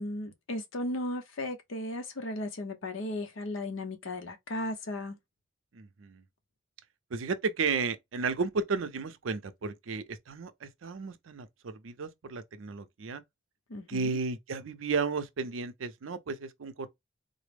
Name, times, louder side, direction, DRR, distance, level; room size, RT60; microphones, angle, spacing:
voice 1, 0.0-5.2 13.7-14.2, left 1 dB, 80° left, 0.7 m, -36 dB
voice 2, 5.7-6.2 7.1-13.2 13.9-16.9, right 4 dB, 80° right, 0.5 m, -33 dB
3.8 x 2.0 x 3.3 m
head